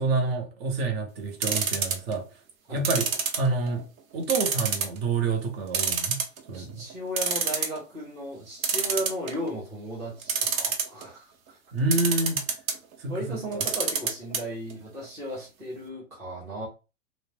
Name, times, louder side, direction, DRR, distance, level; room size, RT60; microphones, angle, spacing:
voice 1, 0.0-2.2 2.7-3.1 3.4-3.9 4.1-6.2 6.5-6.8 11.7-12.4 13.0-13.6, right 3 dB, 50° right, 0.8 m, -28 dB
sound 1, 1.4-2.1 2.8-3.8 4.3-5.0 5.3-5.4 5.7-6.6 6.9-7.0 7.2-7.8 8.6-9.5 10.2-11.0 11.9-12.8 13.5-14.4 14.7-14.8 15.0-15.1, right 6 dB, 90° right, 0.8 m, -26 dB
voice 2, 6.5-11.3 13.1-16.7, equal, 10° right, 0.4 m, -35 dB
2.6 x 2.0 x 3.2 m
supercardioid pair, 145°, 39 cm